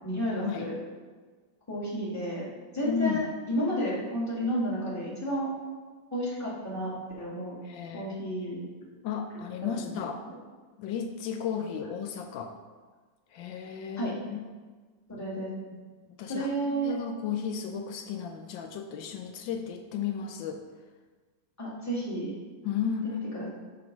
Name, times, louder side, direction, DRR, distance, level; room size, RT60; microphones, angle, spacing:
voice 1, 0.0-0.8 1.7-2.4 2.7-5.5 6.1-7.6 7.9-8.6 9.8-9.9 14.0-14.1 15.1-15.5 16.3-16.9 21.6-22.3 23.0-23.5, equal, 10° left, -7 dB, 1.8 m, -31 dB
voice 2, 2.8-3.2 7.6-8.2 9.0-10.2 10.8-12.5 13.3-14.4 15.7-15.9 16.2-20.6 22.6-23.2, left 7 dB, 80° left, 5 dB, 1.3 m, -34 dB
7.1 x 3.7 x 5.9 m, 1.4 s
omnidirectional pair, 2.0 m